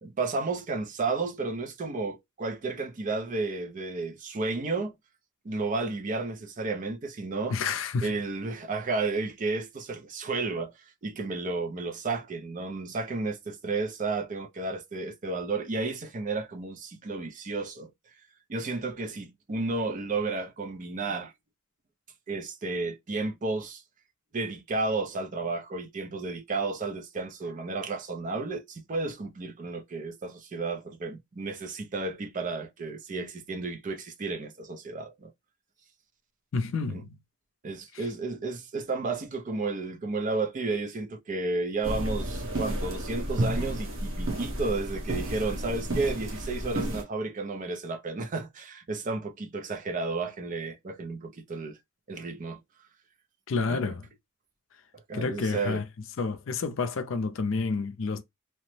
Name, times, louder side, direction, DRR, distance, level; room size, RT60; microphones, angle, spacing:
voice 1, 0.0-4.9 5.4-7.6 8.0-17.9 18.5-21.3 22.3-23.8 24.3-35.3 37.6-51.8 52.1-52.6 53.7-53.9 55.1-55.8, right 3 dB, 35° right, 0.4 m, -32 dB
voice 2, 7.5-8.3 36.5-37.2 37.9-38.1 53.5-54.1 55.1-55.8 56.2-58.2, left 4 dB, 65° left, 0.4 m, -30 dB
sound 1, 41.8-47.0, right 1 dB, 65° right, 1.1 m, -31 dB
3.0 x 2.0 x 3.1 m
head